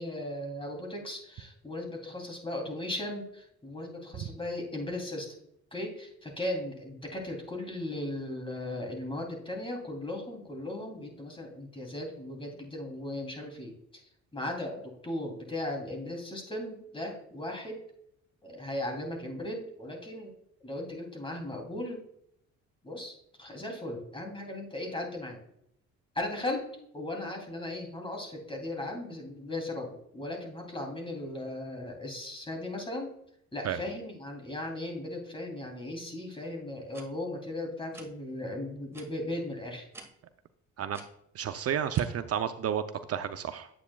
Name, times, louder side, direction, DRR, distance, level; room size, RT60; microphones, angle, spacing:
voice 1, 0.0-5.3 5.7-14.0 14.3-17.8 18.4-20.3 20.6-22.0 22.8-25.4 26.1-26.6 26.9-33.1 33.5-39.9, left 1 dB, 15° left, 1 dB, 2.9 m, -37 dB
sound 1, 36.9-37.1 37.9-38.1 38.9-39.1 39.9-40.1 40.9-41.1 41.9-42.0, right 2 dB, 10° right, 1.9 m, -47 dB
voice 2, 41.3-42.8 43.1-43.7, right 9 dB, 55° right, 9 dB, 0.5 m, -31 dB
9.8 x 8.2 x 2.3 m, 0.74 s
cardioid pair, 90°, 30 cm